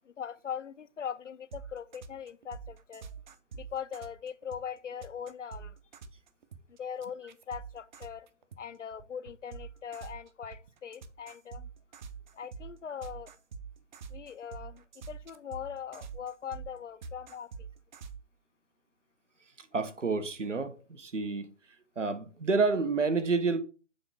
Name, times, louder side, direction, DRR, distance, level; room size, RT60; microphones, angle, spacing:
voice 1, 0.1-3.1 3.6-5.7 6.8-8.3 8.6-11.7 12.3-13.3 14.1-17.7, left 8 dB, 80° left, 0.7 m, -41 dB
sound 1, 1.5-8.6 8.9-18.2, right 5 dB, 40° right, 0.7 m, -45 dB
voice 2, 19.6-21.5 22.0-23.6, right 4 dB, 85° right, 1.2 m, -29 dB
7.0 x 3.4 x 5.5 m
figure-of-eight pair, 135°, 36 cm